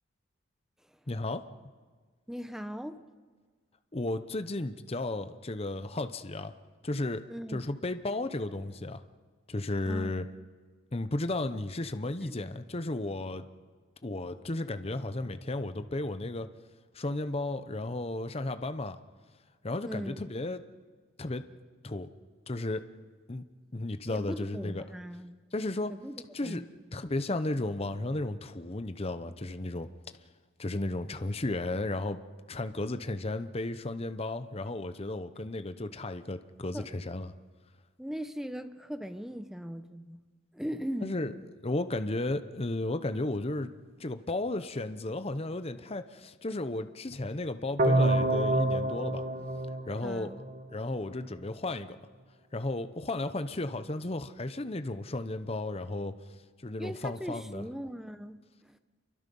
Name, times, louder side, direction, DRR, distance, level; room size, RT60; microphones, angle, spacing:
voice 1, 1.1-1.4 3.9-6.5 6.8-7.2 7.5-9.0 9.5-10.2 10.9-13.5 14.0-16.5 16.9-19.0 19.6-20.6 21.2-21.4 21.8-22.1 22.5-22.8 23.3-23.4 23.7-24.8 25.5-25.9 26.3-26.6 26.9-29.9 30.6-32.2 32.5-37.3 41.0-41.3 41.6-43.7 44.0-49.2 49.9-50.3 50.7-52.0 52.5-56.1 56.6-57.7, left 2 dB, 30° left, 10 dB, 0.8 m, -34 dB
voice 2, 2.3-3.0 7.3-7.6 9.8-10.2 12.2-12.4 19.8-20.2 24.0-25.4 25.9-26.1 26.4-26.7 36.7-36.9 38.0-40.2 40.5-41.2 50.0-50.4 56.8-58.8, equal, ahead, 9 dB, 0.9 m, -39 dB
sound 1, 47.8-50.8, right 1 dB, 40° right, 1.1 m, -27 dB
28.5 x 23.5 x 5.4 m, 1.5 s
head